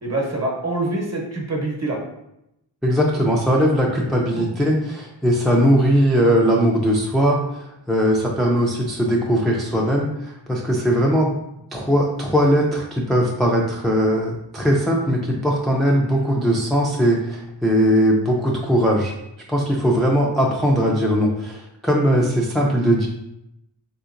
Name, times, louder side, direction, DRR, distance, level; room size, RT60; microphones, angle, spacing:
voice 1, 0.0-2.0 4.3-4.7 16.0-16.3, right 2 dB, 35° right, -1 dB, 0.9 m, -26 dB
voice 2, 2.8-11.4 11.7-19.1 19.5-23.1, equal, ahead, -2 dB, 0.3 m, -19 dB
3.4 x 2.8 x 2.4 m, 0.84 s
wide cardioid pair, 65°, 44 cm